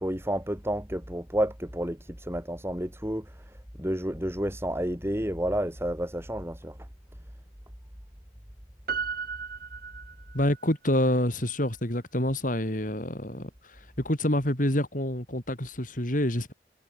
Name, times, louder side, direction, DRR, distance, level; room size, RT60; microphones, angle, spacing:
voice 1, 0.0-3.2 3.8-6.8, equal, 15° right, 3.8 m, -30 dB
Piano, 8.9-10.7 11.0-11.1, right 5 dB, 55° right, 7.4 m, -35 dB
voice 2, 10.3-13.5 14.0-16.5, left 1 dB, 50° left, 6.2 m, -27 dB
head